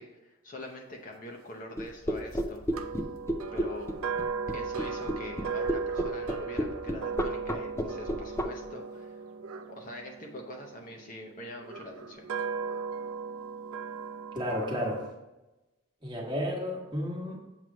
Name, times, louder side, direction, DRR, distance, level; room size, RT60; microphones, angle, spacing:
voice 1, 0.0-2.7 3.5-4.0 4.5-9.3 9.7-12.3, left 1 dB, 40° left, 1 dB, 0.8 m, -44 dB
sound 1, 1.8-8.5, equal, 15° left, 0.5 m, -30 dB
sound 2, 2.7-10.9 11.6-15.1, right 5 dB, 85° right, 0.5 m, -37 dB
voice 2, 14.3-15.0 16.0-17.4, equal, 20° right, -2 dB, 1.3 m, -32 dB
7.5 x 3.2 x 6.0 m, 1.0 s
head